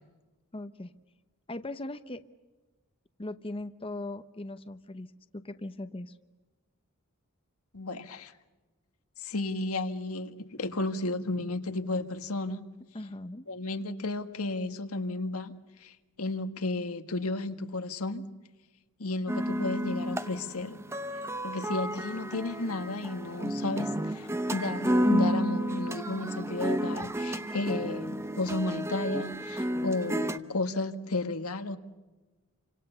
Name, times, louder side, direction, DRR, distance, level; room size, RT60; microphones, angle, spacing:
voice 1, 0.5-0.9 1.5-2.2 3.2-6.2 12.9-13.5, left 2 dB, 25° left, 0.9 m, -39 dB
voice 2, 7.7-8.3 9.2-12.6 13.5-15.5 15.8-18.2 19.0-20.8 21.4-31.8, left 2 dB, 90° left, 1.6 m, -33 dB
sound 1, 19.3-30.4, equal, 10° right, 0.8 m, -31 dB
29.5 x 25.5 x 6.9 m
head